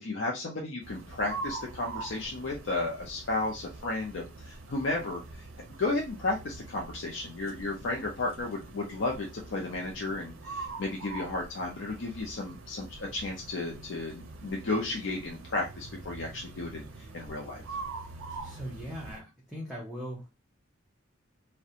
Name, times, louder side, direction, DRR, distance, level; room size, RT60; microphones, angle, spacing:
voice 1, 0.0-17.6, left 2 dB, 65° left, -1 dB, 0.5 m, -33 dB
sound 1, 0.8-19.2, right 3 dB, 90° right, 0.5 m, -44 dB
voice 2, 18.3-20.3, equal, ahead, -5 dB, 0.6 m, -40 dB
2.4 x 2.1 x 2.7 m, 0.26 s
head